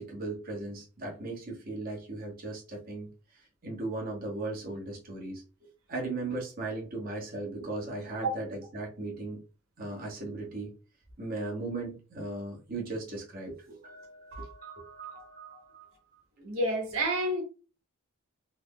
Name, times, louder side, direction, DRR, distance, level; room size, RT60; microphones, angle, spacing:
voice 1, 0.0-3.1 3.6-5.4 5.9-9.4 9.8-10.7 11.2-16.2, right 2 dB, 40° right, 1.1 m, -37 dB
voice 2, 16.4-17.4, right 1 dB, 70° right, 1.1 m, -29 dB
3.4 x 2.0 x 3.6 m
head